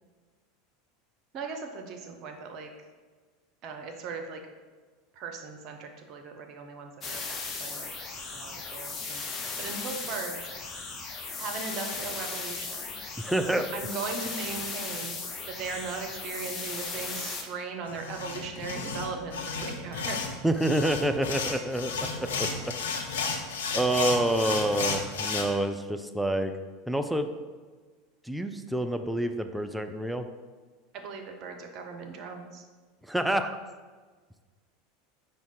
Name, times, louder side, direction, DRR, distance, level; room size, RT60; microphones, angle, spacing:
voice 1, 1.3-2.7 3.6-4.4 5.1-7.2 7.6-10.4 11.4-12.9 13.7-15.1 15.5-20.2 30.9-32.6, right 4 dB, 45° right, 4 dB, 0.6 m, -38 dB
sound 1, 7.0-17.4, left 4 dB, 30° left, 0.7 m, -37 dB
voice 2, 13.2-13.7 20.4-22.6 23.0-23.1 23.7-26.5 26.9-27.3 28.2-30.3 33.1-33.6, right 1 dB, 5° right, 7 dB, 0.3 m, -28 dB
sound 2, 17.9-25.4, left 4 dB, 70° left, 0.6 m, -33 dB
5.2 x 2.2 x 4.7 m, 1.4 s
figure-of-eight pair, 80°, 0 cm